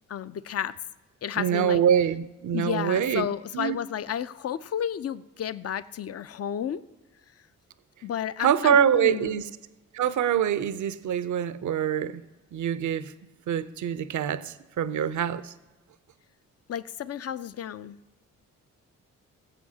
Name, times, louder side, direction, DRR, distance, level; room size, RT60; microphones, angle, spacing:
voice 1, 0.1-0.7 1.2-1.8 2.5-6.8 8.0-9.5 16.7-18.0, left 9 dB, 45° left, 15 dB, 0.5 m, -32 dB
voice 2, 1.4-3.3 3.5-3.8 8.4-9.4 9.9-12.2 12.5-13.1 13.5-15.5, right 9 dB, 55° right, 15 dB, 0.6 m, -25 dB
18.5 x 7.7 x 2.8 m, 1.1 s
supercardioid pair, 50°, 35 cm